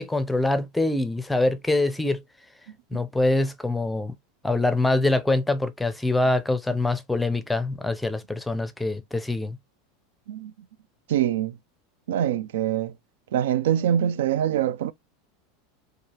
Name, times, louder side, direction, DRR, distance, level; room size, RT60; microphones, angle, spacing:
voice 1, 0.0-2.2 2.9-4.1 4.4-9.6, left 2 dB, 5° left, 0.5 m, -24 dB
voice 2, 11.1-11.5 12.1-12.9 13.3-14.9, right 10 dB, 90° right, 0.4 m, -24 dB
4.6 x 2.4 x 2.9 m
supercardioid pair, 145°, 0 cm